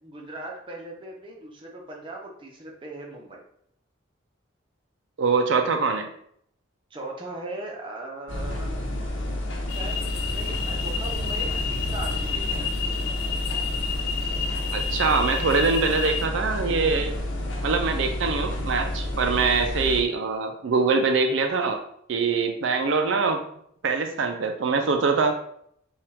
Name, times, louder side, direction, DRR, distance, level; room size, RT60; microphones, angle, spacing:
voice 1, 0.0-3.4 6.9-8.9 9.7-12.7, right 2 dB, 25° right, -1 dB, 0.7 m, -39 dB
voice 2, 5.2-6.1 14.7-17.1 17.6-21.8 22.1-23.4 23.8-25.3, right 4 dB, 70° right, 5 dB, 0.4 m, -23 dB
sound 1, 8.3-20.0, left 1 dB, 70° left, 0.8 m, -30 dB
sound 2, 9.7-16.3, left 7 dB, 50° left, 0.3 m, -31 dB
5.6 x 2.4 x 3.4 m, 0.69 s
head